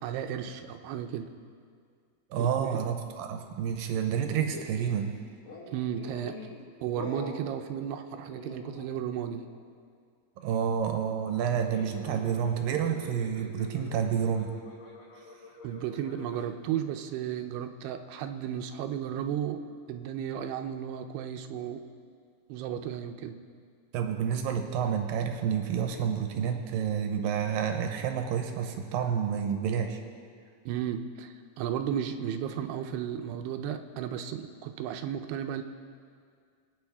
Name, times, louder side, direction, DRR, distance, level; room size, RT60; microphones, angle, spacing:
voice 1, 0.0-1.3 2.4-2.9 5.7-6.4 6.8-9.4 15.6-19.6 19.9-21.8 22.5-23.4 30.7-35.6, right 9 dB, 90° right, 6 dB, 2.8 m, -34 dB
voice 2, 2.3-5.2 10.4-14.6 23.9-30.0, right 8 dB, 75° right, 5 dB, 2.4 m, -29 dB
sound 1, 4.5-5.0 5.4-6.6 7.0-7.4 8.1-9.1 9.3-9.6 11.6-16.5, left 2 dB, 50° left, 2.4 m, -45 dB
25.0 x 9.3 x 3.5 m, 2.1 s
omnidirectional pair, 4.5 m